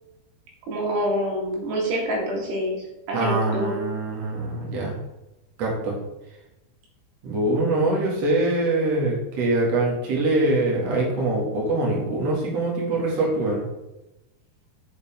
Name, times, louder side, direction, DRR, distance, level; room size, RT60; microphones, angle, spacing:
voice 1, 0.7-3.9, equal, 75° right, -2 dB, 4.0 m, -26 dB
voice 2, 3.1-5.0 5.6-6.0 7.2-13.6, right 2 dB, 45° right, -3 dB, 2.7 m, -23 dB
8.2 x 7.5 x 3.5 m, 0.99 s
omnidirectional pair, 5.0 m